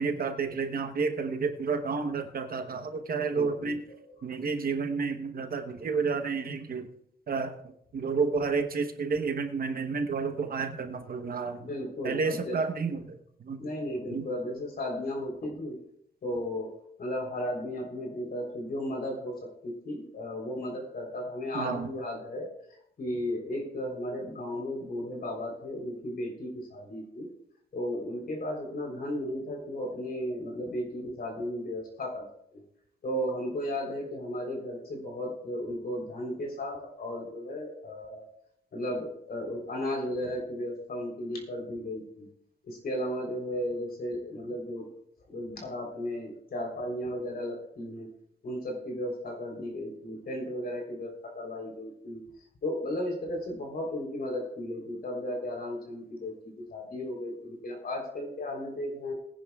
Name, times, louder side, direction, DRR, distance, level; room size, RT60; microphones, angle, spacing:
voice 1, 0.0-3.8 4.2-6.9 7.3-7.5 7.9-11.6 12.0-13.6 14.1-14.2 21.5-21.9, right 5 dB, 55° right, 6 dB, 1.0 m, -30 dB
voice 2, 3.1-4.0 11.6-12.6 13.6-15.8 16.2-16.7 17.0-22.5 23.0-27.3 27.7-32.2 32.5-32.6 33.0-38.3 38.7-42.3 42.6-44.9 45.3-48.1 48.4-52.2 52.6-56.3 56.7-59.1, left 1 dB, 55° left, 1 dB, 3.7 m, -35 dB
21.0 x 10.0 x 2.4 m, 0.74 s
wide cardioid pair, 130°, 18 cm